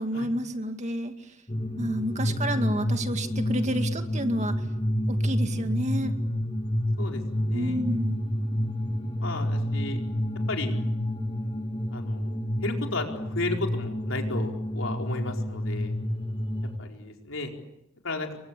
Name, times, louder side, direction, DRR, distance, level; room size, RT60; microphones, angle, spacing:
voice 1, 0.0-1.4 1.8-4.6 5.1-6.1 7.5-8.2, equal, 35° right, 7 dB, 2.1 m, -30 dB
sound 1, 1.5-16.8, equal, 25° left, 1.9 m, -29 dB
voice 2, 2.2-2.5 5.5-5.6 7.0-7.8 9.2-10.0 10.5-10.7 11.9-15.9 16.8-17.5 18.0-18.3, left 2 dB, 65° left, 2 dB, 4.7 m, -34 dB
30.0 x 23.5 x 8.4 m, 0.84 s
head